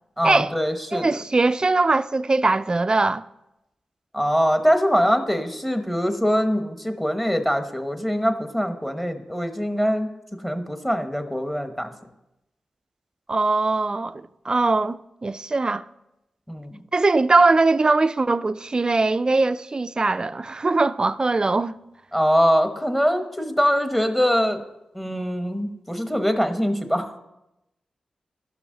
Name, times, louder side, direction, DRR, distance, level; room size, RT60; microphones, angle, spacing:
voice 1, 0.2-1.2 4.1-10.1 10.4-11.9 16.5-16.8 22.1-24.6 24.9-27.2, equal, 5° left, 1.1 m, -23 dB
voice 2, 0.9-3.2 13.3-15.8 16.9-21.8, right 3 dB, 35° right, 0.3 m, -21 dB
12.0 x 6.0 x 3.9 m
cardioid pair, 45°, 2 cm